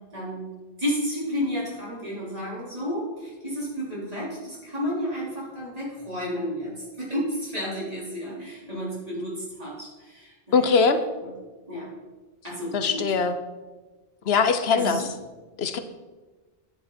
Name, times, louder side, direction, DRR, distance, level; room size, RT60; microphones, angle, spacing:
voice 1, 0.1-0.5 0.8-10.5 11.2-11.3 11.7-11.9 12.4-13.0 14.7-15.1, equal, 40° right, -7 dB, 4.3 m, -31 dB
voice 2, 10.5-11.0 12.7-13.3 14.2-15.0 15.6-15.8, left 5 dB, 80° left, 10 dB, 1.0 m, -21 dB
10.0 x 9.0 x 4.3 m, 1.2 s
omnidirectional pair, 1.0 m